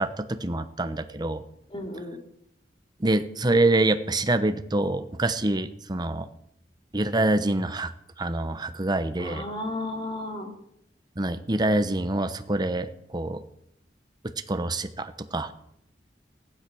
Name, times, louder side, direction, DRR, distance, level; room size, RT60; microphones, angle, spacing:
voice 1, 0.0-1.4 3.0-6.3 6.9-7.9 8.2-9.4 11.2-13.4 14.5-15.5, right 2 dB, 25° right, 10 dB, 1.0 m, -26 dB
voice 2, 1.7-2.2 9.2-10.6, left 1 dB, 30° left, 3 dB, 2.8 m, -33 dB
15.5 x 11.5 x 6.3 m, 0.75 s
head